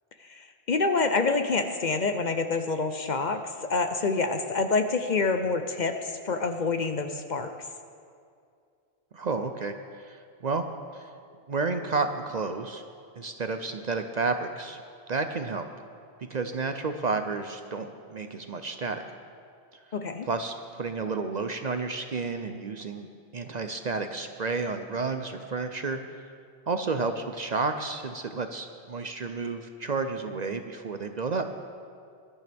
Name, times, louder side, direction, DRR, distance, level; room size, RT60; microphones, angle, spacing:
voice 1, 0.2-7.5 19.9-20.3, left 3 dB, 50° left, 7 dB, 0.7 m, -27 dB
voice 2, 9.1-10.6 10.9-11.1 11.5-12.8 13.2-14.8 15.1-15.7 16.3-19.1 20.2-26.3 26.7-31.5, right 4 dB, 50° right, 7 dB, 0.7 m, -31 dB
20.0 x 12.5 x 3.5 m, 2.3 s
omnidirectional pair, 1.1 m